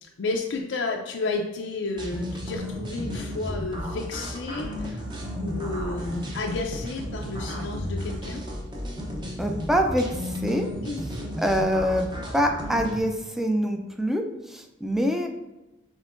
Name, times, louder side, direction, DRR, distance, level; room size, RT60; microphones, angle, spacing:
voice 1, 0.0-5.0 5.4-8.4 10.8-11.0, left 3 dB, 80° left, 1 dB, 0.4 m, -31 dB
sound 1, 2.0-13.0, equal, 25° right, 0.7 m, -33 dB
voice 2, 9.4-10.7 11.4-12.1 12.3-15.3, equal, ahead, 4 dB, 0.4 m, -25 dB
5.2 x 3.7 x 2.5 m, 0.99 s
head